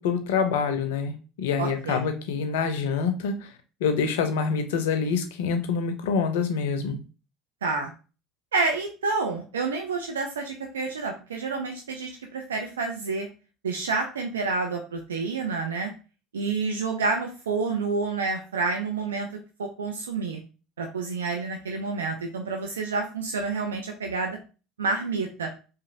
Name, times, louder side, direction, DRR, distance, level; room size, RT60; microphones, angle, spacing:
voice 1, 0.0-3.5 3.8-7.0, left 5 dB, 70° left, 8 dB, 0.4 m, -26 dB
voice 2, 1.6-2.0 7.6-7.9 8.5-13.3 13.6-15.9 16.3-19.3 19.6-20.4 20.8-24.4 24.8-25.5, right 4 dB, 80° right, 2 dB, 0.3 m, -29 dB
2.9 x 2.5 x 2.5 m, 0.34 s
figure-of-eight pair, 65°, 0 cm